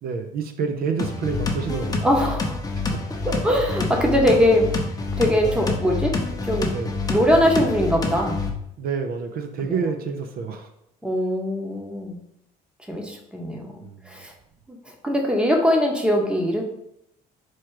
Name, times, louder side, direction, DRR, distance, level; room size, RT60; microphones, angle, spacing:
voice 1, 0.0-2.1 2.8-3.0 6.7-6.9 8.8-10.7 13.8-14.0, right 5 dB, 65° right, 6 dB, 0.5 m, -28 dB
sound 1, 1.0-8.5, left 3 dB, 20° left, 0.7 m, -27 dB
voice 2, 2.0-2.6 3.2-4.7 5.2-6.1 6.4-6.7 7.1-8.4 9.6-9.8 11.0-12.2 12.9-13.7 14.0-14.3 14.7-16.6, equal, 5° right, 1 dB, 0.9 m, -21 dB
4.4 x 2.3 x 4.6 m, 0.77 s
cardioid pair, 110°, 17 cm